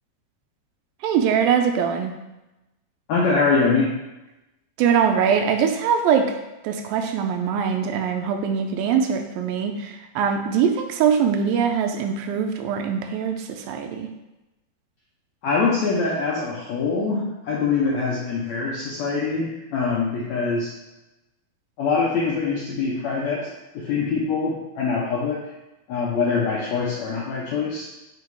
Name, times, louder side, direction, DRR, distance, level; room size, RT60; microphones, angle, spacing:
voice 1, 1.0-2.1 4.8-6.3 6.6-14.1, right 7 dB, 85° right, 5 dB, 2.3 m, -22 dB
voice 2, 3.1-3.9 15.4-20.7 21.8-25.4 25.9-27.9, left 4 dB, 80° left, -4 dB, 1.6 m, -24 dB
7.3 x 2.9 x 4.7 m, 0.99 s
omnidirectional pair, 4.2 m